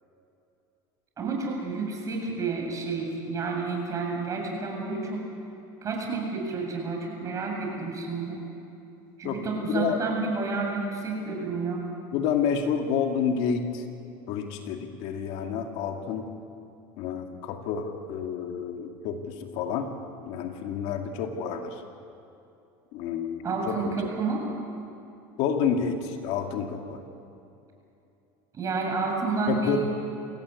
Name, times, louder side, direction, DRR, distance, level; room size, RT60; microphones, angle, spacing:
voice 1, 1.2-5.2 5.8-8.4 9.2-11.8 23.4-24.4 28.5-29.8, right 4 dB, 30° right, 1 dB, 7.5 m, -30 dB
voice 2, 9.2-10.0 12.1-13.8 14.3-16.3 17.0-19.9 20.2-21.8 22.9-24.1 25.4-27.0 29.5-29.8, left 7 dB, 65° left, 4 dB, 2.3 m, -29 dB
26.5 x 17.0 x 8.5 m, 2.8 s
supercardioid pair, 115°, 11 cm